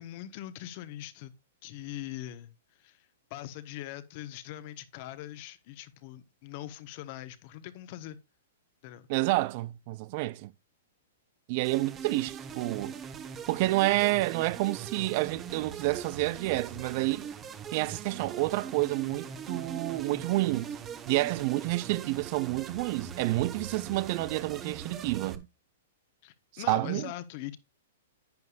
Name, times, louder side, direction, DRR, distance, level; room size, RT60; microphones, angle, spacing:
voice 1, 0.0-1.3 1.6-2.5 2.8-8.2 8.8-9.1 26.2-27.6, left 13 dB, 50° left, 1.2 m, -42 dB
voice 2, 9.1-10.5 11.5-13.0 13.5-17.3 17.7-20.8 21.1-25.5 26.5-27.1, right 19 dB, 45° right, 0.4 m, -29 dB
sound 1, 11.6-25.4, right 6 dB, 25° right, 1.3 m, -41 dB
10.5 x 9.4 x 2.5 m
hypercardioid pair, 125°, 0 cm